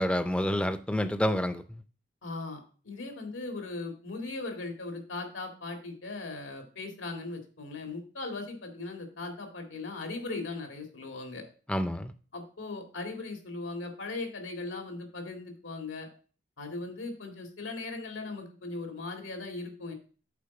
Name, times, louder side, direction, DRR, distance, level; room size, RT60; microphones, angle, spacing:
voice 1, 0.0-1.6 11.7-12.1, equal, 5° left, 0.4 m, -28 dB
voice 2, 2.2-2.6 2.8-11.4 12.3-16.1 16.6-19.9, left 3 dB, 85° left, 2.0 m, -38 dB
8.3 x 4.1 x 5.8 m
head